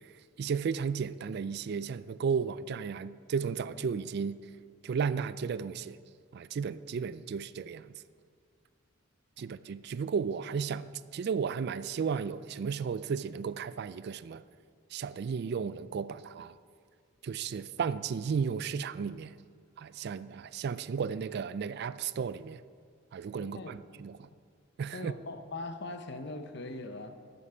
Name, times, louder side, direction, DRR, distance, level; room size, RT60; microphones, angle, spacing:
voice 1, 0.4-4.4 4.8-6.0 6.3-7.9 9.4-14.4 14.9-16.5 17.2-19.3 19.8-22.6 23.1-24.3 24.8-25.1, right 6 dB, 55° right, 0.3 m, -34 dB
voice 2, 23.4-23.7 24.9-27.1, left 2 dB, 60° left, 0.8 m, -41 dB
11.5 x 8.3 x 5.6 m
head